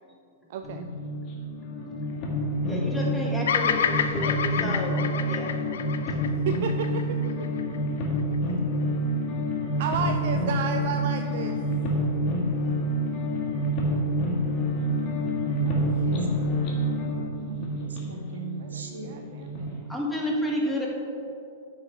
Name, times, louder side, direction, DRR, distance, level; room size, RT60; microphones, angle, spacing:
voice 1, 0.5-0.8 6.5-7.5 9.8-11.6 15.6-16.2 18.6-19.7, right 7 dB, 60° right, 6 dB, 0.4 m, -33 dB
sound 1, 0.6-19.7, equal, 45° left, 1.5 m, -28 dB
voice 2, 2.7-5.5 19.9-20.9, left 1 dB, 5° left, -2 dB, 1.6 m, -30 dB
Bird vocalization bird call bird song, 3.5-7.8, left 7 dB, 70° left, 0.5 m, -28 dB
voice 3, 15.9-16.2 17.4-19.1, right 4 dB, 85° right, 2 dB, 1.3 m, -39 dB
9.1 x 5.8 x 4.6 m, 2.6 s
hypercardioid pair, 110°, 0 cm